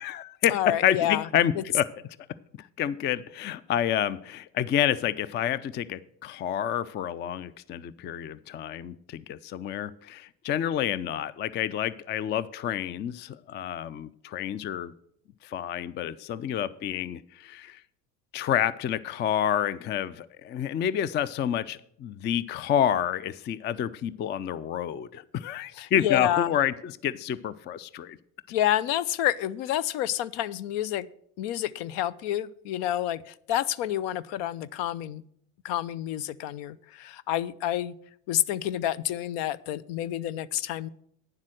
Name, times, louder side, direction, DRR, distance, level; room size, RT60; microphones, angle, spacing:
voice 1, 0.0-1.9 2.8-14.9 15.4-17.8 18.3-28.2, left 10 dB, 25° left, 19 dB, 0.3 m, -29 dB
voice 2, 0.5-1.2 1.6-1.7 25.8-26.5 28.5-31.1 31.4-35.2 35.6-37.9 38.3-40.9, left 12 dB, 60° left, 20 dB, 0.6 m, -28 dB
9.8 x 7.3 x 6.3 m, 0.69 s
hypercardioid pair, 75°, 48 cm